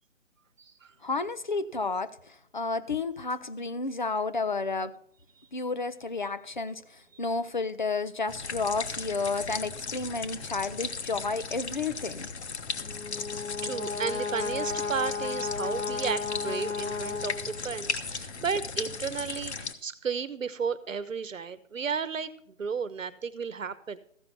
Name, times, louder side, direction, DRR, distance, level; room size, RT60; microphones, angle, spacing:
voice 1, 1.0-4.9 5.5-12.3, left 3 dB, 40° left, 0.5 m, -31 dB
sound 1, 8.3-19.7, left 5 dB, 55° left, 1.1 m, -37 dB
Brass instrument, 12.8-17.8, left 5 dB, 80° left, 1.4 m, -34 dB
voice 2, 13.6-22.3 22.6-24.0, right 6 dB, 80° right, 1.1 m, -33 dB
14.5 x 5.5 x 5.9 m
hypercardioid pair, 165°, 39 cm